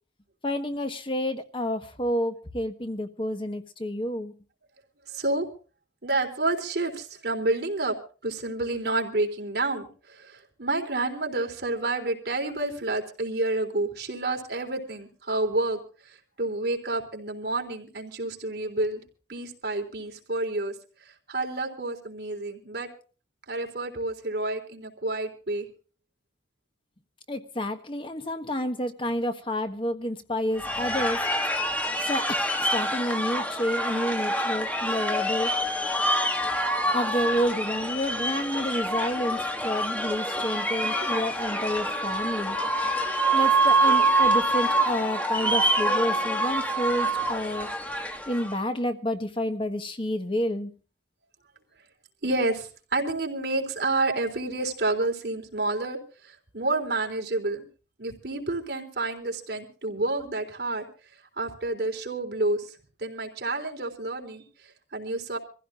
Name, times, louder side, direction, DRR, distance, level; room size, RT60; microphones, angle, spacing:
voice 1, 0.4-4.3 27.3-31.3 32.0-35.5 36.9-42.6 43.3-47.7 48.3-50.7, equal, 30° left, 1.3 m, -29 dB
voice 2, 5.1-5.5 6.0-8.0 8.2-19.0 19.3-20.7 21.0-22.9 23.5-25.7 36.1-36.2 40.3-40.4 42.4-42.5 43.0-43.1 52.2-57.7 58.0-60.9 61.1-65.4, right 2 dB, 60° right, 3.6 m, -29 dB
sound 1, 30.6-48.6, right 1 dB, 10° left, 1.8 m, -26 dB
26.0 x 15.5 x 2.5 m
head